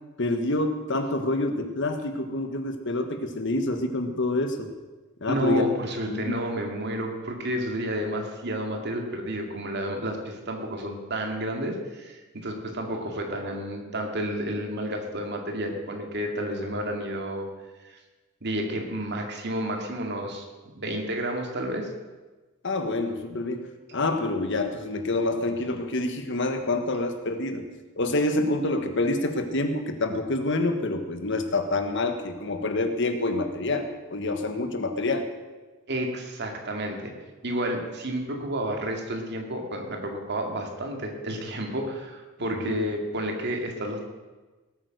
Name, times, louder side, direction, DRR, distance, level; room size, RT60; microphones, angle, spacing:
voice 1, 0.2-4.7 5.2-5.7 6.1-6.4 16.5-17.0 22.6-27.7 28.0-35.3 42.4-42.8, left 2 dB, 60° left, 7 dB, 1.5 m, -27 dB
voice 2, 5.3-17.5 17.8-18.0 18.4-20.5 20.8-21.9 35.9-37.1 37.4-44.0, right 1 dB, 55° right, 2 dB, 2.4 m, -31 dB
18.5 x 8.9 x 6.5 m, 1.2 s
head